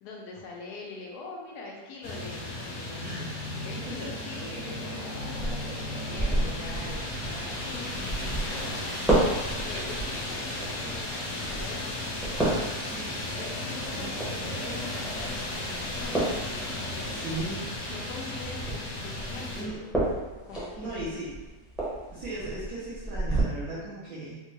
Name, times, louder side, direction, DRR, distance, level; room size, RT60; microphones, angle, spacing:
voice 1, 0.0-8.7 9.5-12.6 13.4-14.2 14.4-17.4 17.8-20.1 20.5-21.1, left 3 dB, 85° left, -1 dB, 1.2 m, -43 dB
sound 1, 2.0-19.6, left 1 dB, 60° left, 1.0 m, -35 dB
voice 2, 3.0-3.8 12.3-13.1 13.9-14.5 17.0-17.6 19.6-19.8 20.8-21.3 22.1-24.4, right 2 dB, 70° right, -10 dB, 1.2 m, -38 dB
sound 2, 5.3-23.4, right 2 dB, ahead, 0.6 m, -33 dB
3.9 x 2.2 x 3.0 m, 1.2 s
omnidirectional pair, 1.7 m